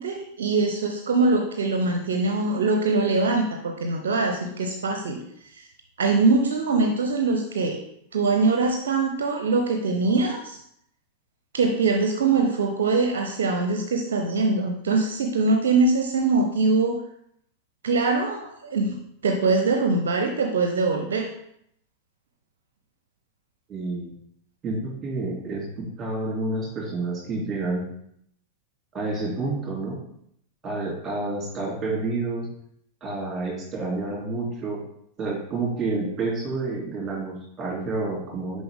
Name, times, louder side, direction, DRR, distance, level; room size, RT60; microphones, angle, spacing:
voice 1, 0.0-5.2 5.5-5.6 6.0-7.8 8.1-10.6 11.5-17.0 17.8-19.0 19.2-21.3, right 3 dB, 65° right, 4 dB, 0.6 m, -23 dB
voice 2, 23.7-24.1 24.6-27.8 28.9-30.0 30.6-32.5 33.0-34.8 35.2-38.6, right 3 dB, 20° right, -2 dB, 3.0 m, -29 dB
6.9 x 5.3 x 3.6 m, 0.71 s
figure-of-eight pair, 90°, 0 cm